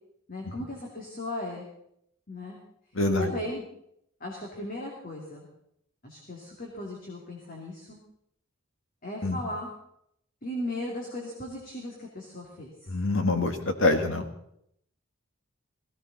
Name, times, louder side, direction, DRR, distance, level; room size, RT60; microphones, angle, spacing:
voice 1, 0.3-1.6 2.3-2.6 3.2-3.6 4.2-5.5 6.0-8.0 9.0-9.7 10.4-12.9, left 1 dB, 40° left, -1 dB, 2.6 m, -37 dB
voice 2, 3.0-3.3 9.2-9.4 12.9-14.3, left 2 dB, 65° left, 7 dB, 1.8 m, -25 dB
17.5 x 16.0 x 4.1 m, 0.74 s
head